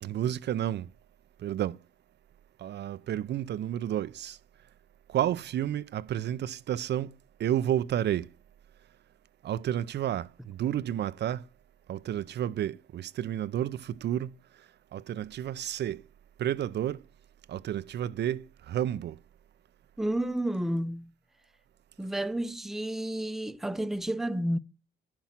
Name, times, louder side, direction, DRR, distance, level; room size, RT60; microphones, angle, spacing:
voice 1, 0.0-0.9 1.4-1.8 2.6-4.4 5.1-7.1 7.4-8.3 9.4-11.4 11.9-14.3 14.9-16.0 16.4-17.0 17.5-19.2, right 11 dB, 60° right, 0.5 m, -31 dB
voice 2, 20.0-21.1 22.0-24.6, right 1 dB, ahead, 0.6 m, -31 dB
10.5 x 5.8 x 7.3 m
cardioid pair, 90°, 20 cm